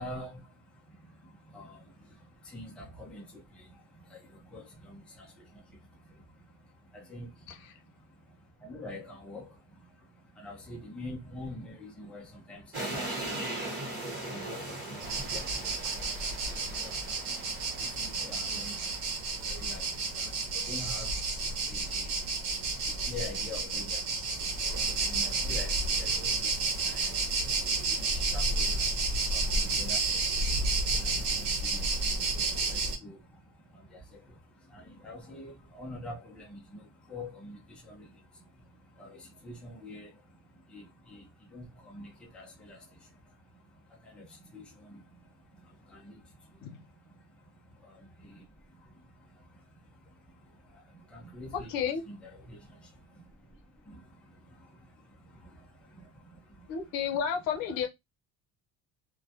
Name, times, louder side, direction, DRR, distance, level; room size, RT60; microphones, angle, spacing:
voice 1, 0.0-57.2, left 1 dB, 5° left, 0.5 m, -48 dB
sound 1, 12.7-19.8, right 2 dB, 30° right, 1.0 m, -40 dB
sound 2, 15.0-33.0, right 3 dB, 80° right, 0.9 m, -31 dB
voice 2, 51.5-52.0 56.7-57.9, left 7 dB, 70° left, 0.7 m, -32 dB
2.2 x 2.2 x 2.7 m
cardioid pair, 165°, 36 cm